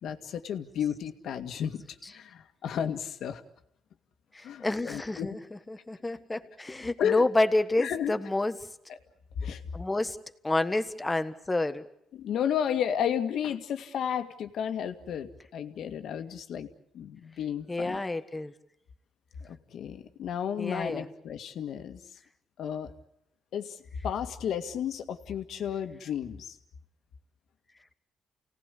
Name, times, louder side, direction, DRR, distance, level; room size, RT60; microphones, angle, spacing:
voice 1, 0.0-3.4 4.4-5.4 7.0-7.2 7.8-8.1 8.9-9.0 9.4-9.6 12.1-16.7 16.9-18.0 19.4-22.0 22.6-22.9 23.5-23.8 24.0-26.6, left 8 dB, 70° left, 7 dB, 1.9 m, -33 dB
voice 2, 4.3-5.4 5.7-8.6 9.7-10.2 10.4-11.8 17.7-18.5 20.6-21.1, left 2 dB, 15° left, 10 dB, 1.5 m, -29 dB
29.5 x 18.0 x 8.4 m, 0.77 s
cardioid pair, 90°, 0 cm